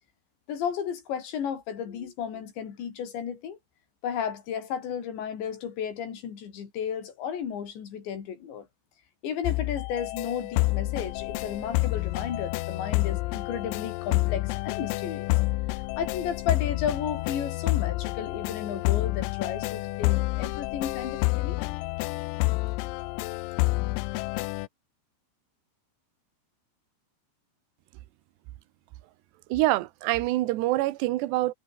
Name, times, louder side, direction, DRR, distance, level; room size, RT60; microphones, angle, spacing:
voice 1, 0.5-3.6 4.0-8.7 9.2-15.3 16.0-21.7, left 8 dB, 60° left, 5.9 m, -33 dB
sound 1, 9.5-24.7, left 21 dB, 90° left, 3.5 m, -28 dB
voice 2, 29.5-31.5, right 17 dB, 70° right, 2.9 m, -25 dB
omnidirectional pair, 5.8 m